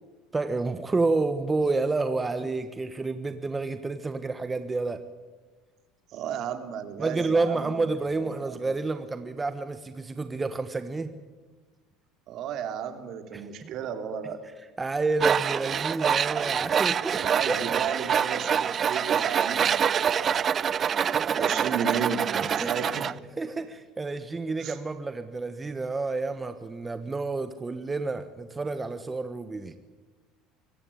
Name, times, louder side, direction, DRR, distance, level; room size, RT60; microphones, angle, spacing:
voice 1, 0.3-5.0 7.0-11.1 13.3-13.7 14.8-17.6 21.1-21.5 22.4-22.7 23.4-29.8, right 3 dB, 20° right, 10 dB, 1.3 m, -29 dB
voice 2, 6.1-7.8 8.4-8.6 12.3-14.4 17.1-20.6 21.3-23.1 24.6-24.8, right 7 dB, 55° right, 8 dB, 2.8 m, -34 dB
Tools, 15.2-23.1, right 8 dB, 40° right, 0.6 m, -26 dB
25.0 x 16.5 x 8.6 m, 1.3 s
supercardioid pair, 85°, 0 cm